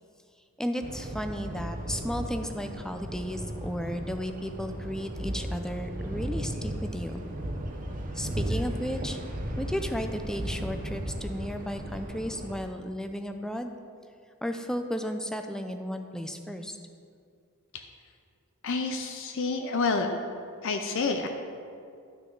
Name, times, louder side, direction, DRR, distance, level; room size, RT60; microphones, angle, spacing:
voice 1, 0.6-7.2 8.1-9.2 9.6-13.7 14.4-16.8, equal, 5° left, 6 dB, 0.4 m, -34 dB
sound 1, 0.8-12.6, right 1 dB, 40° right, 0.9 m, -35 dB
voice 2, 18.6-20.1 20.6-21.3, left 4 dB, 65° left, 5 dB, 0.6 m, -28 dB
11.5 x 6.2 x 3.9 m, 2.3 s
head